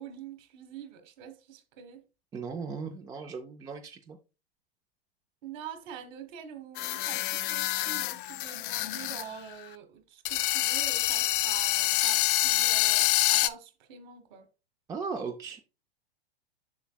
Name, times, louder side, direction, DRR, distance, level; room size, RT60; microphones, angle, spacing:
voice 1, 0.0-2.0 5.4-14.5, right 8 dB, 45° right, 1.3 m, -45 dB
voice 2, 2.3-4.2 14.9-15.6, right 5 dB, 10° right, 0.4 m, -37 dB
sound 1, 6.8-9.2 9.5-9.6 10.2-13.5, left 15 dB, 55° left, 0.4 m, -27 dB
7.1 x 6.0 x 2.2 m
hypercardioid pair, 110°, 32 cm